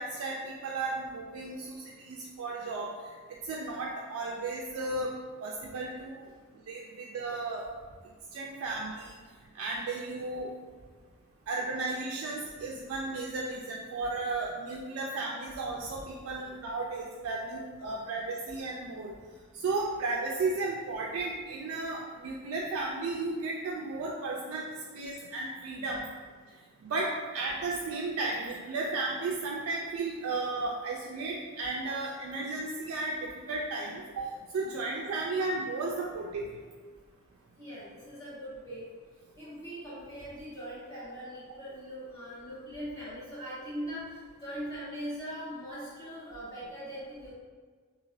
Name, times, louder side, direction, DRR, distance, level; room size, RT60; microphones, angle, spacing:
voice 1, 0.0-2.9 3.4-5.1 5.4-6.3 6.7-7.6 8.3-9.1 9.5-10.5 11.5-19.1 19.5-24.7 24.9-26.0 26.8-34.3 34.5-36.5, right 3 dB, 75° right, -2 dB, 0.3 m, -34 dB
voice 2, 37.6-38.8 39.4-44.0 44.4-47.3, equal, 15° left, -13 dB, 1.5 m, -41 dB
3.0 x 2.7 x 2.6 m, 1.5 s
head